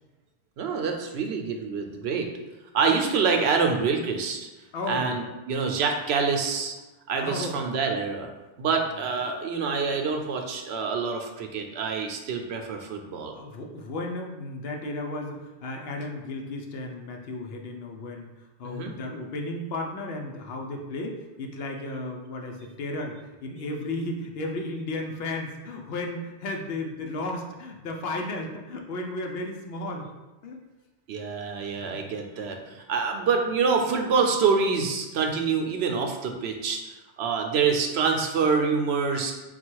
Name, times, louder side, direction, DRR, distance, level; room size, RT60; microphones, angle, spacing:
voice 1, 0.6-2.3 2.7-4.5 4.9-6.7 7.1-8.3 8.6-13.4 18.6-18.9 31.1-39.3, right 5 dB, 75° right, 3 dB, 0.8 m, -26 dB
voice 2, 4.7-5.2 7.2-7.6 13.1-18.3 18.6-23.2 23.4-30.1 30.4-30.6 31.9-32.0, left 2 dB, 70° left, 1 dB, 0.8 m, -34 dB
4.0 x 2.3 x 4.5 m, 1.1 s
omnidirectional pair, 1.1 m